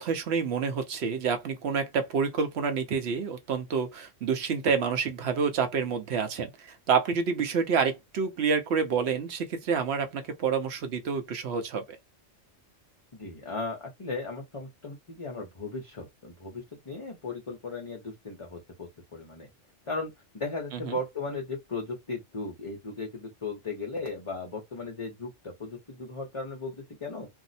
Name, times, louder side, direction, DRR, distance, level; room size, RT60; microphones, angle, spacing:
voice 1, 0.0-11.8 20.8-21.0, right 6 dB, 65° right, 0.9 m, -28 dB
voice 2, 13.1-19.5 19.9-27.3, left 3 dB, 30° left, 0.7 m, -37 dB
2.7 x 2.1 x 4.0 m
omnidirectional pair, 1.3 m